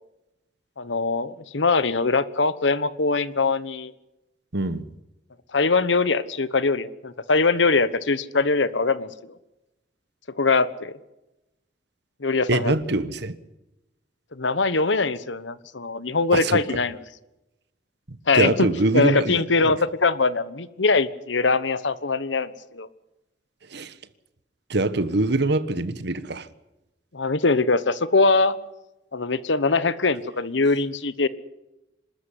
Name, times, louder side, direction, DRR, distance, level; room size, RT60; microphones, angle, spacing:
voice 1, 0.8-3.9 5.5-9.1 10.4-10.9 12.2-12.7 14.3-17.0 18.3-18.7 18.9-22.9 27.1-28.6 29.1-31.3, left 3 dB, 85° left, 1.2 m, -22 dB
voice 2, 4.5-4.9 12.5-13.3 16.3-16.6 18.3-19.7 23.7-23.9 24.7-26.5, right 2 dB, 65° right, 1.3 m, -24 dB
26.0 x 13.5 x 9.9 m
head